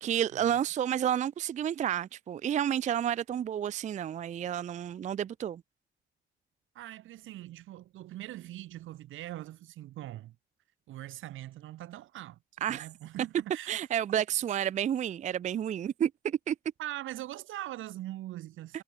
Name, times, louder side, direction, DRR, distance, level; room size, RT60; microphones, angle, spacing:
voice 1, 0.0-5.6 12.6-12.9 13.7-16.6, right 10 dB, 40° right, 0.4 m, -30 dB
voice 2, 6.7-10.4 10.9-12.4 12.7-13.8 14.5-14.6 16.8-18.8, right 14 dB, 80° right, 1.3 m, -42 dB
cardioid pair, 90°, 20 cm